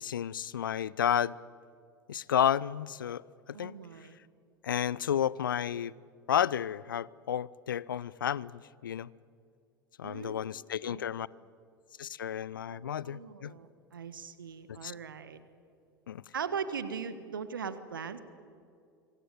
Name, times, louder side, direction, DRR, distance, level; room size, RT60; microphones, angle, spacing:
voice 1, 0.0-1.4 2.1-3.2 3.6-3.7 4.6-5.9 6.3-9.1 10.0-11.3 12.0-13.5 14.7-14.9 16.1-16.2, left 9 dB, 75° left, 23 dB, 0.6 m, -31 dB
voice 2, 3.5-4.2 10.0-10.3 10.8-11.1 12.7-15.4 16.3-18.2, right 6 dB, 75° right, 13 dB, 1.5 m, -39 dB
26.0 x 25.0 x 8.0 m, 2.3 s
figure-of-eight pair, 75°, 11 cm